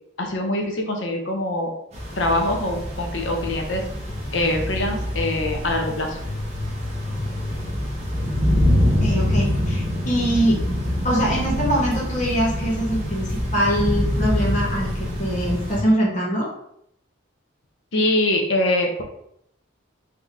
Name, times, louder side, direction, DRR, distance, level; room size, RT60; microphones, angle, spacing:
voice 1, 0.2-1.7 2.2-3.8 4.3-6.2 17.9-19.0, left 1 dB, 65° left, 3 dB, 0.8 m, -23 dB
sound 1, 1.9-15.8, left 1 dB, 35° right, 1.2 m, -25 dB
voice 2, 9.0-10.6 11.0-16.5, right 1 dB, 35° left, -6 dB, 1.0 m, -23 dB
3.7 x 2.9 x 3.6 m, 0.73 s
head